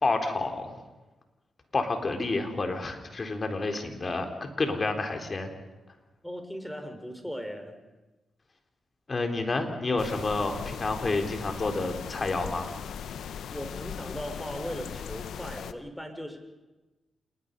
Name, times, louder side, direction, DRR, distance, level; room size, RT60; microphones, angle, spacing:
voice 1, 0.0-0.8 1.7-5.5 9.1-12.7, left 3 dB, 45° left, 4 dB, 4.1 m, -29 dB
voice 2, 6.2-7.8 13.5-16.4, equal, 5° left, 6 dB, 4.9 m, -38 dB
sound 1, 10.0-15.7, left 8 dB, 75° left, 0.9 m, -39 dB
28.0 x 20.5 x 5.5 m, 1.1 s
supercardioid pair, 45°, 0 cm